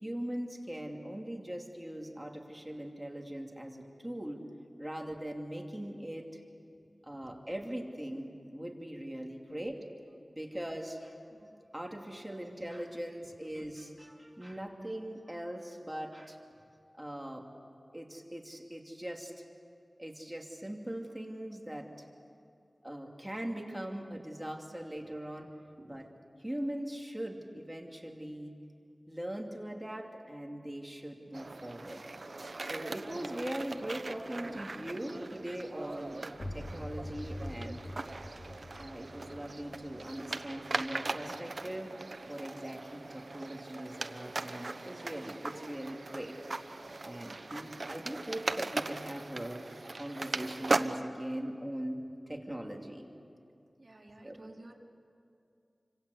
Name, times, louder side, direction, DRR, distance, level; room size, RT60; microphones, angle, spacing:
voice 1, 0.0-4.5 4.8-6.4 7.0-9.8 10.3-11.2 11.7-16.4 16.9-17.5 17.9-19.4 20.0-22.1 22.8-25.5 25.9-26.1 26.4-28.6 29.1-32.0 32.6-37.8 38.8-41.9 42.3-46.4 47.0-49.6 49.9-53.1 54.2-54.4, right 1 dB, 10° right, 1 dB, 2.6 m, -41 dB
sound 1, 31.3-51.0, right 2 dB, 60° right, 0.9 m, -39 dB
sound 2, 36.3-41.9, left 1 dB, 60° left, 2.9 m, -45 dB
voice 2, 53.8-54.7, right 1 dB, 45° right, -1 dB, 3.5 m, -52 dB
28.5 x 25.5 x 8.2 m, 2.4 s
wide cardioid pair, 65°, 0 cm